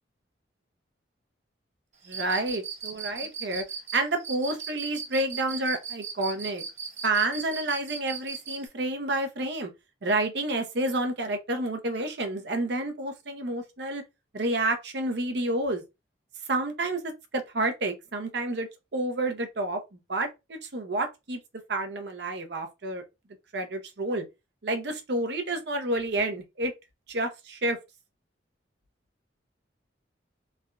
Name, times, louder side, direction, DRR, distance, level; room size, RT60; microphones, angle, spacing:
Cricket, 2.0-8.6, right 6 dB, 40° right, 0.9 m, -37 dB
voice 1, 2.1-3.6 3.9-6.6 7.0-9.7 10.0-14.0 14.3-15.8 16.5-19.8 20.1-21.4 21.7-23.0 23.5-24.2 24.6-26.7 27.1-27.8, right 2 dB, 60° right, 0.7 m, -29 dB
3.3 x 2.4 x 2.2 m
head